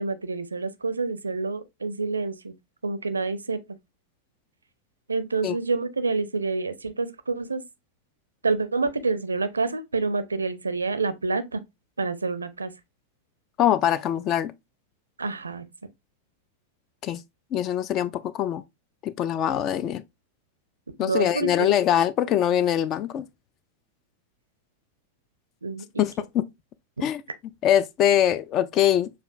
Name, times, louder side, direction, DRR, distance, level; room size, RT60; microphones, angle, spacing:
voice 1, 0.0-2.5 2.8-3.6 5.1-7.6 8.4-11.6 12.0-12.7 15.2-15.6 21.0-21.7 25.6-26.0, right 3 dB, 75° right, 0.4 m, -28 dB
voice 2, 13.6-14.5 17.0-17.2 17.5-18.6 19.0-20.0 21.0-23.3 26.0-26.4 27.0-27.2 27.6-29.1, left 10 dB, 35° left, 0.3 m, -23 dB
6.5 x 2.4 x 2.4 m
figure-of-eight pair, 90°, 0 cm